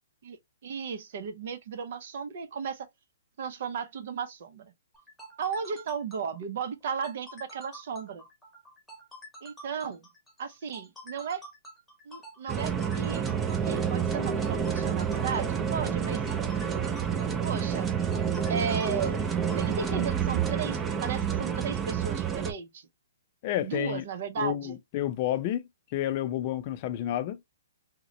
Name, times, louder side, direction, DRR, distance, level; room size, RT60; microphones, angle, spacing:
voice 1, 0.6-2.9 3.4-4.7 5.4-8.2 9.4-10.0 10.4-11.5 12.1-13.2 13.6-16.2 17.4-17.9 18.5-19.2 19.5-22.9 23.6-24.8, right 6 dB, 55° right, 0.7 m, -35 dB
sound 1, 4.9-19.7, right 1 dB, 5° left, 1.1 m, -48 dB
sound 2, 12.5-22.5, right 7 dB, 15° right, 0.5 m, -29 dB
voice 2, 23.4-24.0 24.4-25.6 25.9-27.4, left 12 dB, 40° left, 0.5 m, -30 dB
3.7 x 2.2 x 2.9 m
hypercardioid pair, 145°, 0 cm